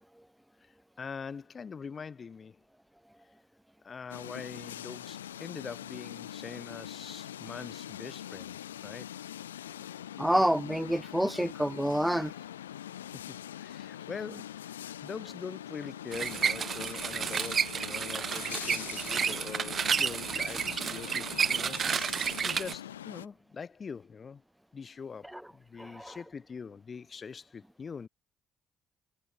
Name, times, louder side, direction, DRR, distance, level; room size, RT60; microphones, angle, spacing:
voice 1, 0.6-2.6 3.8-9.1 13.1-21.8 22.1-24.4 24.7-28.1, left 5 dB, 40° left, 4.4 m, -43 dB
sound 1, 4.1-23.3, left 11 dB, 85° left, 1.8 m, -43 dB
voice 2, 10.2-12.3 25.3-25.4 25.8-26.2, equal, 5° right, 0.5 m, -28 dB
sound 2, 16.1-22.7, right 7 dB, 45° right, 0.9 m, -31 dB
figure-of-eight pair, 45°, 0 cm